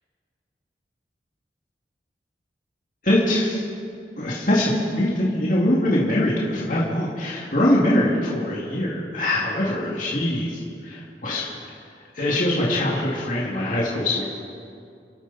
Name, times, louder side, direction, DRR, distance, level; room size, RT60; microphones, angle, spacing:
voice 1, 3.0-3.7 4.2-11.7 12.1-14.2, left 1 dB, 50° left, -5 dB, 2.4 m, -23 dB
29.0 x 12.0 x 4.2 m, 2.4 s
head